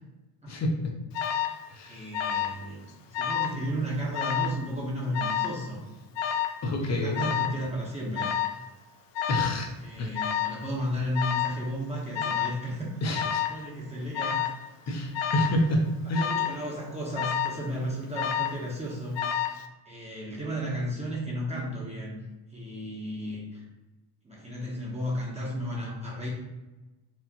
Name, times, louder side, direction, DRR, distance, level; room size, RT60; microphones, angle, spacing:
voice 1, 0.5-0.9 1.7-2.0 6.6-7.3 9.3-9.7 10.0-10.1 13.0-13.4 14.9-15.8 16.1-16.3, left 1 dB, 35° left, 2 dB, 0.7 m, -28 dB
Alarm, 1.1-1.6 2.1-2.6 2.9-3.6 4.1-4.6 5.1-5.6 6.2-6.6 7.2-7.6 8.2-8.6 9.2-9.6 10.2-10.6 11.2-11.6 12.1-12.6 13.1-13.6 14.1-14.6 15.1-15.6 16.1-16.6 17.2-17.6 18.2-18.6 19.2-19.6, left 9 dB, 70° left, 0.5 m, -29 dB
voice 2, 1.9-5.8 6.6-8.3 9.8-13.0 13.5-14.4 16.2-19.2 19.9-22.2 22.5-23.6 24.2-26.3, equal, 15° right, -5 dB, 0.9 m, -34 dB
4.5 x 2.5 x 2.9 m, 1.1 s
cardioid pair, 95°, 47 cm